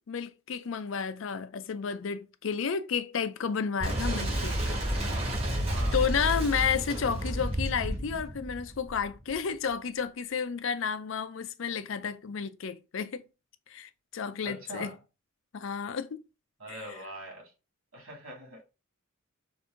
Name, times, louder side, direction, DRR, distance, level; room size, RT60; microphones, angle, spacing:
voice 1, 0.1-4.8 5.9-13.2 13.7-14.9 15.5-16.2 16.7-16.8, left 6 dB, 65° left, 0.5 m, -31 dB
Boom, 3.8-9.4, equal, 30° right, 1.4 m, -31 dB
voice 2, 14.4-15.0 16.6-17.5 17.9-18.6, equal, 85° right, 2.5 m, -42 dB
5.1 x 2.6 x 3.7 m
head